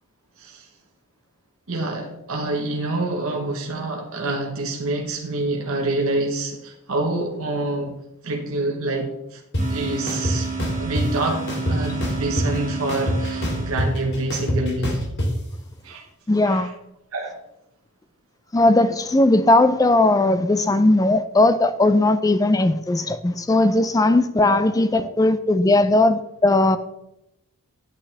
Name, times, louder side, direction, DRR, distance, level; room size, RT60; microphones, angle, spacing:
voice 1, 1.7-9.4 9.7-10.5 10.8-15.1 15.8-16.1 16.4-16.7 17.1-17.4 24.5-24.6 25.0-25.1, right 2 dB, 65° right, 2 dB, 1.0 m, -27 dB
sound 1, 9.5-9.6 10.1-11.0 11.5-12.6 12.9-15.3, equal, 50° left, 2.1 m, -24 dB
sound 2, 9.6-14.3, right 4 dB, 35° right, 1.5 m, -32 dB
voice 2, 16.3-16.7 18.5-26.8, left 2 dB, 15° left, 12 dB, 0.4 m, -18 dB
8.5 x 8.5 x 3.3 m, 0.85 s
head